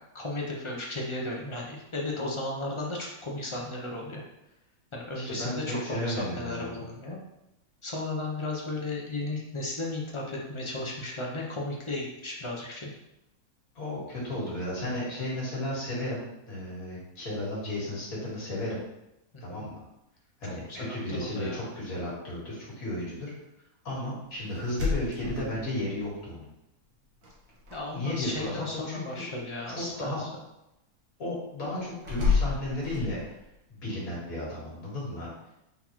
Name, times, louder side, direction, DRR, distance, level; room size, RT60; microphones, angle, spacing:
voice 1, 0.1-4.2 4.9-7.2 7.8-12.9 19.5-19.7 20.4-21.6 27.7-30.3, left 2 dB, 40° left, -2 dB, 0.4 m, -35 dB
voice 2, 5.1-6.8 13.8-18.8 19.4-19.8 20.4-23.3 23.8-26.5 27.9-29.2 29.7-30.2 31.2-33.3 33.7-35.3, left 1 dB, 70° left, -6 dB, 2.1 m, -34 dB
sound 1, 24.6-26.1 27.2-27.8 28.1-28.6 32.0-33.4, left 4 dB, 65° right, 1.4 m, -29 dB
4.0 x 4.0 x 3.0 m, 0.88 s
omnidirectional pair, 1.6 m